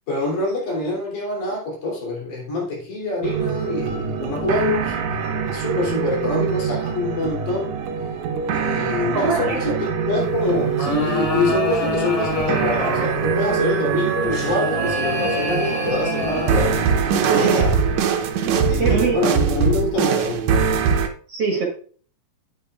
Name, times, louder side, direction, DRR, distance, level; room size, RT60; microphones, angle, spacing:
voice 1, 0.1-5.0 5.5-7.7 8.5-16.8 17.0-17.7 18.7-20.5, left 2 dB, 65° left, -3 dB, 4.6 m, -25 dB
sound 1, 3.2-21.1, right 6 dB, 70° right, 1.9 m, -23 dB
voice 2, 9.1-9.6 17.3-17.7 18.4-19.2 21.3-21.7, right 5 dB, 50° right, 0 dB, 2.3 m, -23 dB
sound 2, 10.5-13.3 14.3-16.9, left 2 dB, 15° left, 1.6 m, -27 dB
10.0 x 9.1 x 2.4 m, 0.43 s
omnidirectional pair, 3.8 m